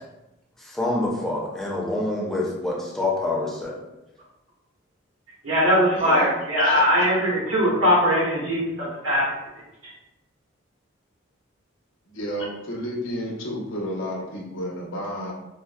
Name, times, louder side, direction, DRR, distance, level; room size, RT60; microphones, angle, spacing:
voice 1, 0.6-3.7, left 2 dB, ahead, -5 dB, 0.5 m, -26 dB
voice 2, 5.4-9.2, equal, 85° right, -6 dB, 1.3 m, -20 dB
voice 3, 6.0-6.3 6.6-7.1 12.1-15.3, equal, 75° left, -1 dB, 0.7 m, -31 dB
4.4 x 2.0 x 2.2 m, 0.94 s
head